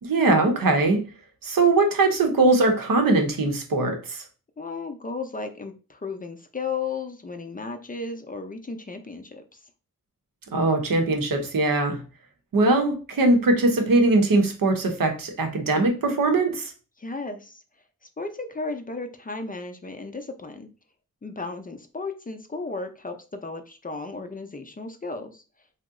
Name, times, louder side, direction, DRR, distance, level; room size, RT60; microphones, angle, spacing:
voice 1, 0.0-1.1 1.4-4.2 10.5-12.0 12.5-16.7, right 2 dB, 75° right, 4 dB, 0.8 m, -21 dB
voice 2, 4.6-9.6 17.0-17.6 18.2-20.7 21.2-25.4, left 4 dB, 25° left, 7 dB, 0.4 m, -34 dB
2.8 x 2.0 x 3.5 m, 0.35 s
cardioid pair, 50°, 34 cm